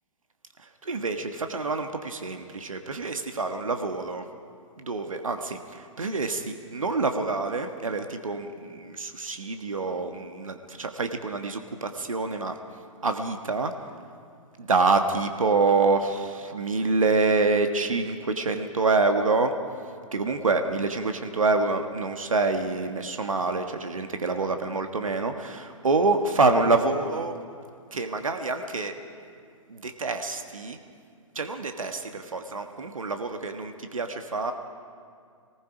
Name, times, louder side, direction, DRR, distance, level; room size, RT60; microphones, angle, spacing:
voice 1, 0.6-4.2 4.8-12.6 13.0-13.7 14.6-19.5 20.1-27.4 27.9-29.0 29.7-30.8 31.3-34.5, right 3 dB, 80° right, 6 dB, 1.4 m, -26 dB
27.0 x 19.5 x 5.0 m, 2.2 s
figure-of-eight pair, 120°, 17 cm